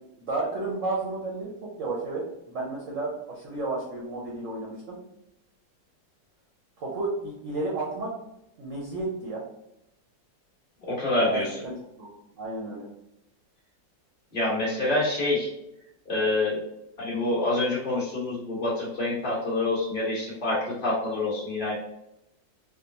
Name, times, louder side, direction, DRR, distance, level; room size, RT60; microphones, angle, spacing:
voice 1, 0.2-5.0 6.8-8.1 8.6-9.4 11.3-12.8, right 2 dB, 65° right, -4 dB, 0.8 m, -32 dB
voice 2, 10.9-11.5 14.3-15.5 16.1-16.6 17.0-21.7, left 2 dB, 30° left, -6 dB, 1.1 m, -26 dB
3.7 x 2.1 x 2.8 m, 0.85 s
omnidirectional pair, 2.0 m